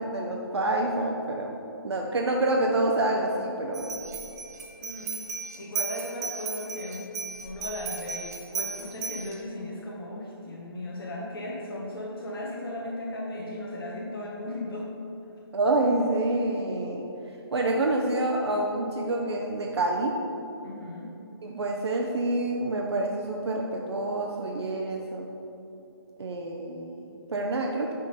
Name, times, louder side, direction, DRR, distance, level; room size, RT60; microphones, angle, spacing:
voice 1, 0.0-1.6 1.8-4.0 15.5-20.2 21.4-25.3 26.2-27.9, right 2 dB, 85° right, 0 dB, 0.7 m, -27 dB
sound 1, 3.7-9.4, right 5 dB, 40° right, 0.8 m, -36 dB
voice 2, 4.8-5.2 5.5-7.1 7.4-14.9 20.6-21.1, left 1 dB, 60° left, -4 dB, 1.3 m, -36 dB
10.0 x 3.8 x 4.3 m, 2.9 s
hypercardioid pair, 155°, 13 cm